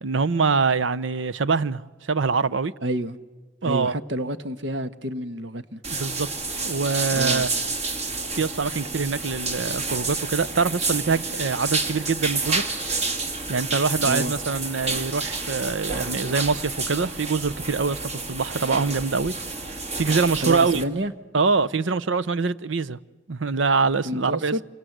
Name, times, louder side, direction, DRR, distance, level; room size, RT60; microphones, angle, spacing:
voice 1, 0.0-2.7 3.6-3.9 5.9-7.5 8.4-12.7 13.5-19.3 20.0-20.8 21.3-23.0 23.3-24.5, right 4 dB, 85° right, 0.8 m, -24 dB
voice 2, 2.8-3.2 3.6-5.8 7.1-7.5 14.0-14.3 20.4-21.1 24.0-24.6, right 1 dB, 70° right, 1.3 m, -29 dB
sound 1, 5.8-20.8, right 3 dB, 35° right, 2.4 m, -29 dB
28.0 x 24.5 x 8.0 m
head